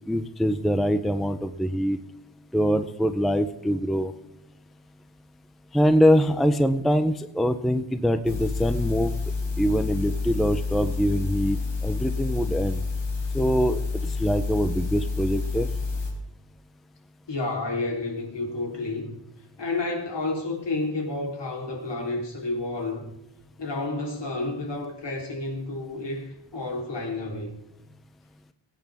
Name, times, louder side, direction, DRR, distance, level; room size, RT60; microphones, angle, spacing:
voice 1, 0.0-2.0 2.5-4.1 5.7-9.1 9.6-12.8 13.3-13.8 14.2-15.7, equal, ahead, 10 dB, 0.5 m, -23 dB
sound 1, 8.3-16.1, left 3 dB, 80° left, 4.4 m, -29 dB
voice 2, 17.3-19.2 19.6-23.1 23.6-27.5, left 2 dB, 65° left, 1 dB, 3.5 m, -30 dB
22.5 x 9.3 x 3.5 m, 0.88 s
wide cardioid pair, 150°, 46 cm